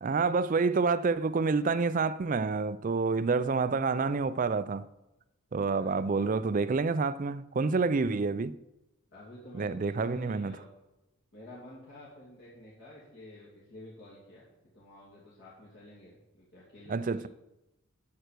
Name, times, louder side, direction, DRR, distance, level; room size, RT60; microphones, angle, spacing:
voice 1, 0.0-4.9 5.5-8.6 9.6-10.6 16.9-17.3, right 4 dB, 35° right, 0.4 m, -28 dB
voice 2, 9.1-10.7 11.3-14.4 14.7-17.3, left 1 dB, 50° left, 2.7 m, -50 dB
9.0 x 7.6 x 6.7 m
head